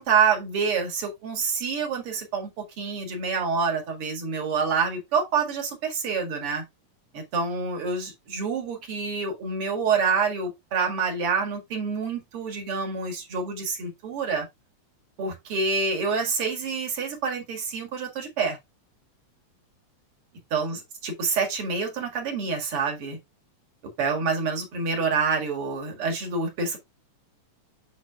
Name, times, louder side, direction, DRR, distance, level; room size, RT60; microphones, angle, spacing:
voice 1, 0.0-6.6 7.1-14.5 15.2-18.6 20.5-23.2 24.0-26.8, right 5 dB, 50° right, 2.6 m, -27 dB
7.8 x 3.9 x 3.4 m
omnidirectional pair, 3.4 m